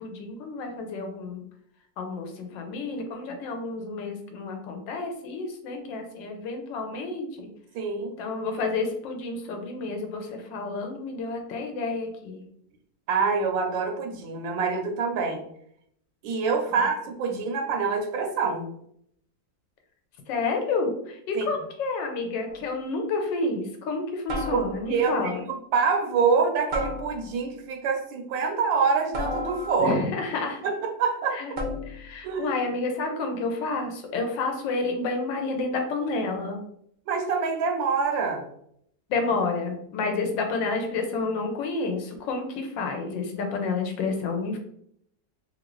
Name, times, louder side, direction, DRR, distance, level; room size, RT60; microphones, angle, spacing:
voice 1, 0.0-1.4 2.0-7.5 8.2-12.4 16.7-16.8 20.3-25.4 29.8-30.6 31.3-31.5 31.9-36.6 39.1-44.6, left 3 dB, 80° left, 4 dB, 1.4 m, -30 dB
voice 2, 7.7-8.1 13.1-15.4 16.2-18.7 21.3-21.5 24.5-24.6 24.9-30.0 30.6-31.6 32.2-32.5 37.1-38.4, right 5 dB, 85° right, 3 dB, 1.4 m, -26 dB
sound 1, 22.5-22.8 24.3-25.1 26.7-27.5 29.1-30.1 31.6-32.1, left 1 dB, 60° right, 0.5 m, -33 dB
3.5 x 2.5 x 3.0 m, 0.70 s
omnidirectional pair, 2.0 m